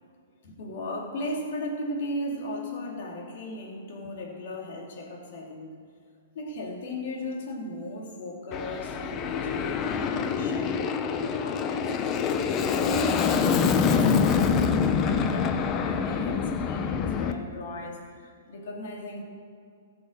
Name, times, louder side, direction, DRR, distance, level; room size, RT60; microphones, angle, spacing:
voice 1, 0.4-5.7 6.3-12.1 12.4-19.2, left 1 dB, 60° left, -1 dB, 3.5 m, -36 dB
Aircraft, 8.5-17.3, left 6 dB, 30° left, 0.9 m, -25 dB
16.0 x 7.0 x 6.8 m, 2.3 s
hypercardioid pair, 125°, 0 cm